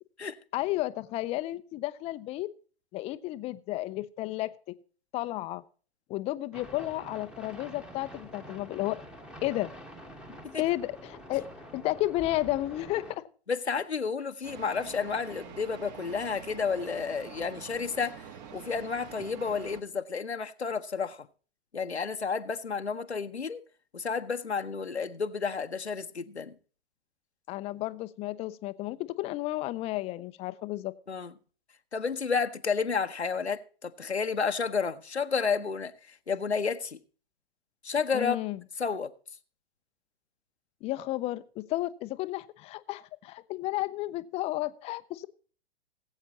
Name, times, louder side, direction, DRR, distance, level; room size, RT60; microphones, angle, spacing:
voice 1, 0.5-2.5 2.9-4.5 5.1-5.6 6.1-9.0 9.4-9.7 10.6-11.4 11.7-13.0 27.5-30.9 38.1-38.6 40.8-45.3, left 17 dB, 20° left, 0.5 m, -32 dB
sound 1, 6.5-13.2, equal, 5° right, 1.1 m, -47 dB
voice 2, 13.5-21.3 21.7-23.6 23.9-26.5 31.1-31.3 31.9-37.0 37.8-38.4 38.8-39.1, left 5 dB, 90° left, 0.9 m, -31 dB
sound 2, 14.4-19.8, right 7 dB, 40° right, 1.5 m, -46 dB
19.5 x 8.2 x 2.9 m
figure-of-eight pair, 110°, 32 cm